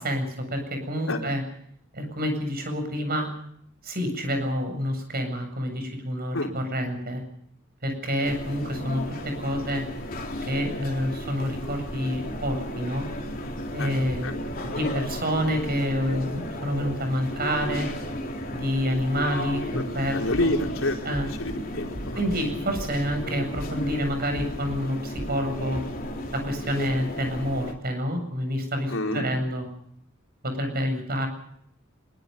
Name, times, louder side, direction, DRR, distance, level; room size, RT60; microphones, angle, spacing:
voice 1, 0.0-1.4 1.9-3.3 3.8-7.2 7.8-9.8 10.5-13.1 13.7-14.3 14.7-17.9 18.5-20.5 21.0-21.3 22.1-25.8 26.3-29.6 30.4-31.3, equal, 45° right, 6 dB, 7.8 m, -28 dB
sound 1, 8.2-27.7, equal, 45° left, 3.8 m, -34 dB
voice 2, 19.7-22.2 28.9-29.3, left 1 dB, 70° left, 2 dB, 4.3 m, -28 dB
sound 2, 20.3-20.8 21.1-21.6 21.9-22.4 22.7-23.2 23.6-24.0 24.4-24.8 25.2-25.4, equal, 80° right, 3.2 m, -37 dB
24.5 x 23.5 x 5.4 m, 0.68 s
head